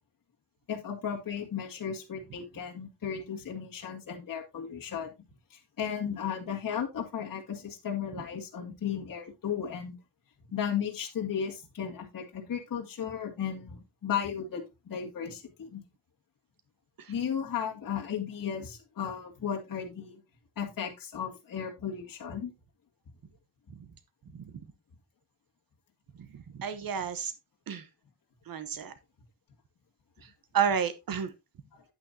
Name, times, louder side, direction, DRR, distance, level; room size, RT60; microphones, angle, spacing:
voice 1, 0.7-5.1 5.5-9.9 10.5-15.8 17.1-20.2 20.6-22.5 31.7-31.8, left 8 dB, 55° left, 2.0 m, -35 dB
voice 2, 26.6-27.3 27.7-27.8 28.5-28.9 30.5-31.3, right 7 dB, 55° right, 1.0 m, -30 dB
9.1 x 8.9 x 2.7 m
wide cardioid pair, 140°, 40 cm